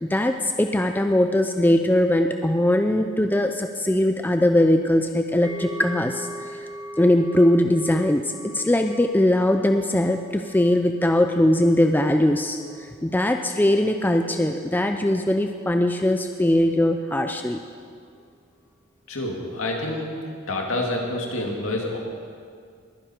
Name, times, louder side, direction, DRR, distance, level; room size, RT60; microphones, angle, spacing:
voice 1, 0.0-6.6 7.0-8.2 8.5-12.6 13.0-17.6, left 1 dB, 10° left, 5 dB, 0.4 m, -20 dB
sound 1, 5.4-14.5 14.8-15.1 15.5-15.6, equal, 20° right, 1.3 m, -42 dB
voice 2, 19.1-20.1 20.5-22.0, left 1 dB, 65° left, 0 dB, 2.3 m, -27 dB
21.0 x 10.0 x 4.4 m, 2.2 s
head